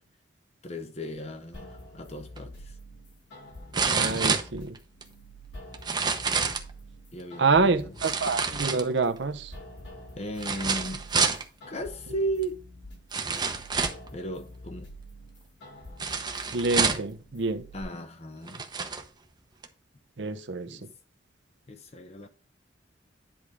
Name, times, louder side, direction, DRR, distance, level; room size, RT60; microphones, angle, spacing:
voice 1, 0.6-2.8 7.1-7.9 10.2-11.0 11.7-12.6 14.1-14.9 17.7-18.6 20.7-20.9 21.7-22.3, right 1 dB, 35° left, 0.9 m, -35 dB
sound 1, 1.5-17.8, equal, 70° left, 4.2 m, -47 dB
sound 2, 2.4-2.5 3.7-5.0 5.7-6.7 8.0-9.2 10.4-11.4 12.4-12.5 13.1-14.1 16.0-17.1 17.9-18.0 18.5-19.0 19.6-19.7, right 5 dB, 25° right, 0.8 m, -28 dB
voice 2, 3.9-4.8 7.4-9.5 16.5-17.6 20.2-20.9, right 4 dB, 70° right, 0.8 m, -27 dB
10.5 x 3.6 x 4.8 m
head